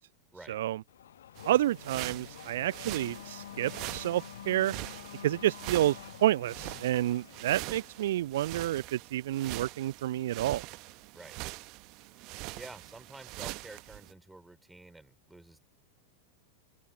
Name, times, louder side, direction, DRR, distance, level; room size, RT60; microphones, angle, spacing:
Race car auto racing / Accelerating revving vroom, 0.9-8.1, left 10 dB, 60° left, 1.2 m, -48 dB
sound 1, 1.4-14.1, right 24 dB, 40° right, 1.3 m, -43 dB
voice 1, 1.4-4.7 5.2-10.6, right 13 dB, 55° right, 0.3 m, -29 dB
voice 2, 12.2-15.6, right 2 dB, 5° right, 3.5 m, -50 dB
open air
figure-of-eight pair, 90°, 0 cm